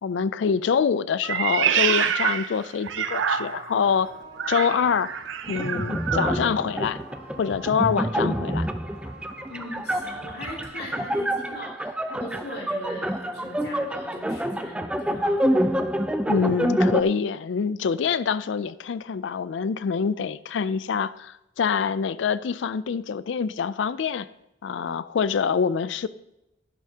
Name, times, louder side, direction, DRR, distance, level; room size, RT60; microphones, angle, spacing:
voice 1, 0.0-4.1 4.5-5.1 5.5-7.0 7.4-8.7 16.3-24.3 24.6-26.1, left 6 dB, 70° left, 16 dB, 0.4 m, -25 dB
Meow, 1.2-3.8 4.3-6.4, right 8 dB, 80° right, 0.6 m, -26 dB
sound 1, 3.8-10.6, right 2 dB, 60° right, 1.5 m, -46 dB
sound 2, 5.5-17.0, equal, 5° right, 0.4 m, -27 dB
voice 2, 9.5-15.4, left 1 dB, 55° left, -2 dB, 2.5 m, -39 dB
11.0 x 10.5 x 2.9 m, 0.90 s
head